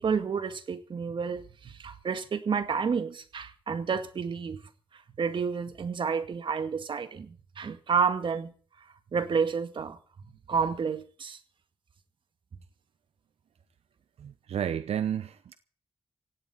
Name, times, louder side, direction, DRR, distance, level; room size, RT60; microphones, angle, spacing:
voice 1, 0.0-4.6 5.2-8.5 9.1-10.0 10.5-11.4, right 6 dB, 55° right, 1.9 m, -30 dB
voice 2, 14.2-15.6, right 9 dB, 85° right, 0.8 m, -31 dB
17.5 x 16.5 x 4.3 m
wide cardioid pair, 150°, 10 cm